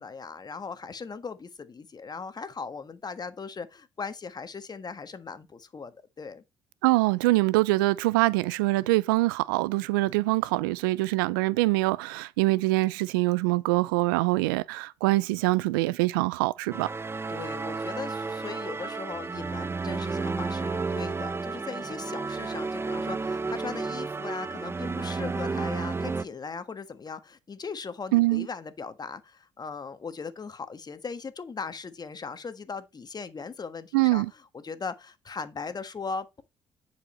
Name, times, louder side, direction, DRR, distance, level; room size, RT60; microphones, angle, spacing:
voice 1, 0.0-6.4 17.3-34.2 34.5-36.4, left 5 dB, 40° left, 1.4 m, -38 dB
voice 2, 6.8-16.9 28.1-28.5 33.9-34.3, right 20 dB, 90° right, 0.4 m, -24 dB
sound 1, 16.7-26.2, right 4 dB, 20° right, 0.6 m, -32 dB
10.0 x 4.9 x 4.3 m
hypercardioid pair, 50°, 11 cm